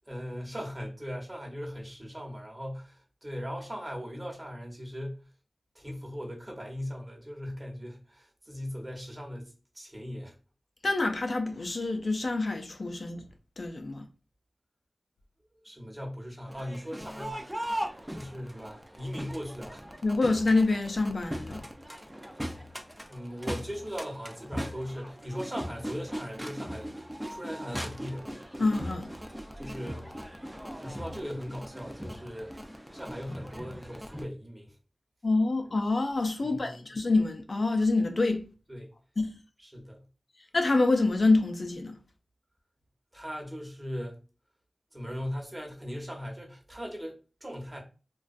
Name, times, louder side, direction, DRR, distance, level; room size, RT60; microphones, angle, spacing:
voice 1, 0.1-5.2 5.7-10.3 15.6-17.4 18.1-19.8 21.4-21.9 23.1-28.7 29.5-30.0 30.8-32.6 32.9-34.8 36.4-36.9 38.7-38.9 39.6-40.0 43.1-44.2 44.9-47.8, equal, 25° right, 0.9 m, -39 dB
voice 2, 10.8-13.3 13.6-14.0 20.0-21.6 28.6-29.1 35.2-38.5 39.2-39.3 40.5-41.9, left 3 dB, 65° left, 0.4 m, -26 dB
Crowd, 16.5-34.2, equal, 10° right, 0.4 m, -39 dB
2.3 x 2.2 x 2.5 m
cardioid pair, 50°, 0 cm